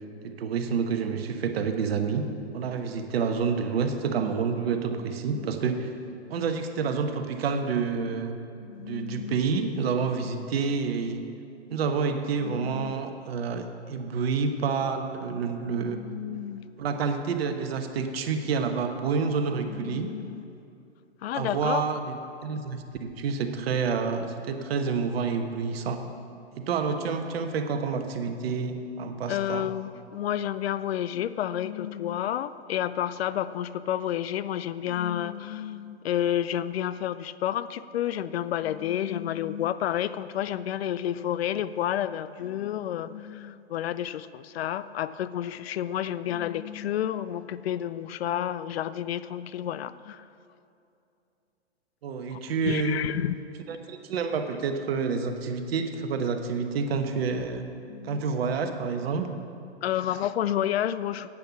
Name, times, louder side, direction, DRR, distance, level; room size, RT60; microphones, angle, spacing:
voice 1, 0.2-2.2 2.5-5.9 6.3-8.4 8.8-11.2 11.7-16.0 16.8-20.1 21.3-26.0 26.6-29.7 52.0-53.0 53.7-57.7 58.0-59.3, right 5 dB, 60° right, 6 dB, 1.1 m, -28 dB
voice 2, 8.6-9.4 12.4-12.9 15.7-16.6 19.7-20.5 21.2-21.8 29.3-50.2 52.3-52.4 52.6-53.3 57.9-58.3 59.8-61.3, left 11 dB, 65° left, 15 dB, 0.5 m, -30 dB
10.5 x 8.7 x 5.8 m, 2.6 s
hypercardioid pair, 110°, 33 cm